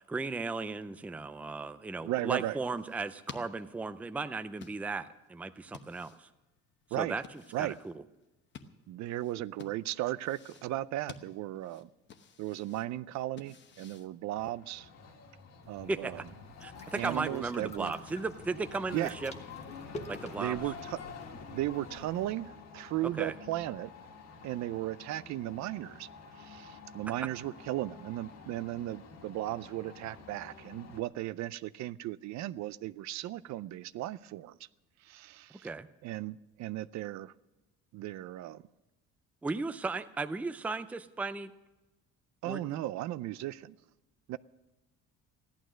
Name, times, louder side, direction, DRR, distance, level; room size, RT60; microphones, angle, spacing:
voice 1, 0.0-6.3 7.0-7.2 7.6-8.0 15.9-16.2 16.6-19.3 20.1-20.6 23.2-23.3 35.6-35.9 39.4-41.5 42.5-42.8, right 3 dB, 5° right, 0.4 m, -36 dB
voice 2, 2.0-2.6 6.9-7.1 7.5-7.8 8.9-11.9 12.4-14.9 15.7-16.2 16.9-17.9 18.9-19.1 20.4-21.0 21.5-23.9 24.4-26.1 26.4-34.6 35.0-35.7 36.0-37.3 37.9-38.6 42.4-43.8 44.3-44.4, right 15 dB, 65° right, 0.5 m, -36 dB
sound 1, 2.4-14.7, left 6 dB, 40° left, 1.0 m, -54 dB
sound 2, 14.4-31.0, left 5 dB, 60° left, 1.8 m, -49 dB
sound 3, 15.6-22.3, left 2 dB, 20° left, 1.2 m, -49 dB
15.5 x 11.5 x 6.2 m
cardioid pair, 160°, 30 cm